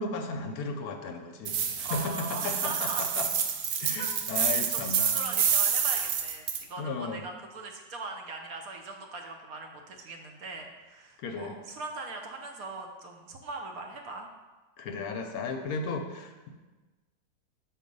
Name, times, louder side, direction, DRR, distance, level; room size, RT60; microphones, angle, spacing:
voice 1, 0.0-3.3 3.8-5.2 6.8-7.2 11.2-11.5 14.8-16.5, left 3 dB, 70° left, 5 dB, 1.0 m, -35 dB
sound 1, 1.5-6.6, right 7 dB, 80° right, 1.3 m, -28 dB
voice 2, 1.8-3.1 4.0-4.1 4.7-14.3, right 3 dB, 65° right, 3 dB, 1.1 m, -40 dB
6.4 x 4.4 x 5.2 m, 1.2 s
omnidirectional pair, 1.8 m